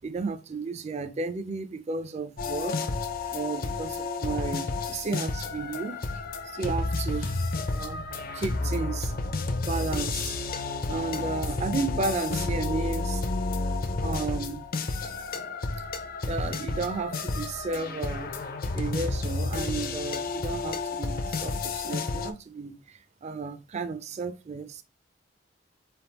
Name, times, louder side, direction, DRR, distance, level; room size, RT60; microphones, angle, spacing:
voice 1, 0.0-2.7 3.3-6.0 6.6-7.3 7.8-8.0 8.4-9.1 9.7-10.3 10.9-13.2 14.0-14.6 16.3-18.3 18.7-22.7 23.2-24.8, right 4 dB, 35° right, 0.4 m, -33 dB
sound 1, 2.4-22.3, left 3 dB, 50° left, 0.6 m, -31 dB
4.3 x 3.4 x 2.9 m
head